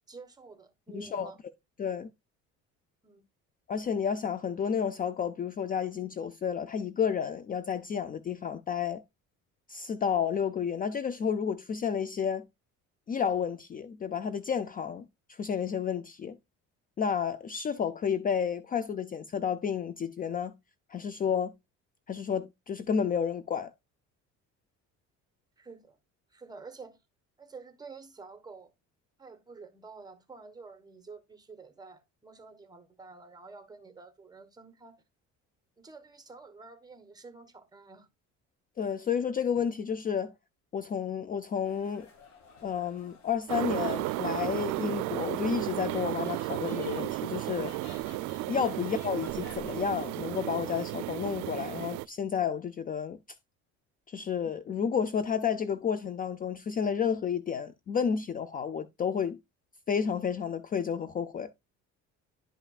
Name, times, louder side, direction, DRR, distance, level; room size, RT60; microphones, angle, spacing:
voice 1, 0.1-1.4 3.0-3.2 25.6-26.0 26.3-27.0 27.4-28.7 29.2-35.0 35.8-38.1, right 4 dB, 15° right, 1.2 m, -49 dB
voice 2, 0.9-1.3 1.8-2.1 3.7-9.0 9.7-12.4 13.1-16.4 17.0-20.5 20.9-21.5 22.1-23.7 38.8-40.3 40.7-42.1 42.6-47.7 48.5-53.2 54.1-59.4 59.9-61.5, left 7 dB, 30° left, 0.5 m, -31 dB
sound 1, 41.6-50.0, left 4 dB, 70° left, 2.8 m, -54 dB
sound 2, 43.5-52.1, right 18 dB, 80° right, 0.5 m, -34 dB
11.0 x 5.6 x 2.3 m
cardioid pair, 140°, 29 cm